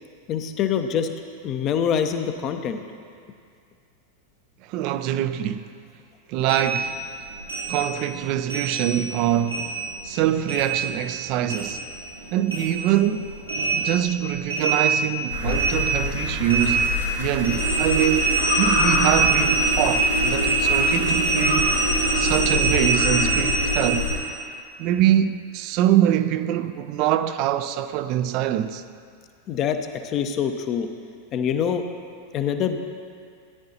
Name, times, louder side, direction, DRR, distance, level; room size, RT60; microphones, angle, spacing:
voice 1, 0.3-1.1 1.4-2.8 29.5-30.9 31.3-31.9 32.3-32.8, left 8 dB, 35° left, 0.7 m, -25 dB
voice 2, 4.7-5.7 6.3-6.9 7.7-9.7 10.0-11.8 12.3-13.3 13.7-16.9 17.2-21.8 22.2-24.1 24.8-28.8, right 11 dB, 40° right, 0.5 m, -24 dB
sound 1, 6.5-9.2 9.5-12.2 12.5-24.3, right 3 dB, 90° right, 2.1 m, -24 dB
sound 2, 15.3-24.2, left 4 dB, 75° left, 3.3 m, -28 dB
17.0 x 10.5 x 2.8 m
figure-of-eight pair, 90°, 0 cm